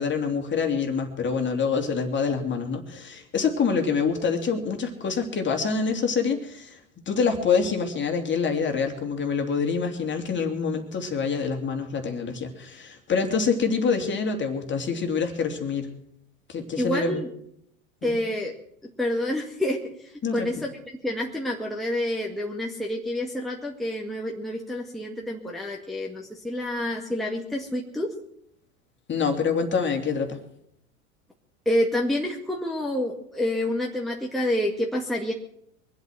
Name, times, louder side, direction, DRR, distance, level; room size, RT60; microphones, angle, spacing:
voice 1, 0.0-6.8 7.1-15.9 16.5-17.2 18.0-18.2 20.2-20.5 29.1-30.4, left 5 dB, 25° left, 4 dB, 3.1 m, -26 dB
voice 2, 16.8-17.3 18.0-18.5 18.8-20.8 21.0-28.1 31.7-35.3, left 1 dB, ahead, -2 dB, 2.0 m, -28 dB
24.0 x 8.2 x 6.3 m, 0.72 s
hypercardioid pair, 90°, 42 cm